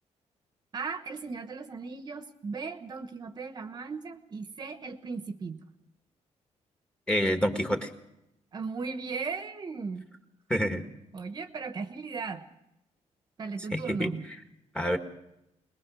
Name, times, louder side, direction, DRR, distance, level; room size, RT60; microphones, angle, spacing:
voice 1, 0.7-5.7 8.5-10.0 11.1-12.4 13.4-14.3, right 4 dB, 35° right, 8 dB, 1.1 m, -37 dB
voice 2, 7.1-7.9 10.5-10.9 13.7-14.1 14.7-15.0, equal, 10° left, 5 dB, 1.7 m, -27 dB
21.5 x 21.0 x 6.2 m, 0.84 s
cardioid pair, 170°, 12 cm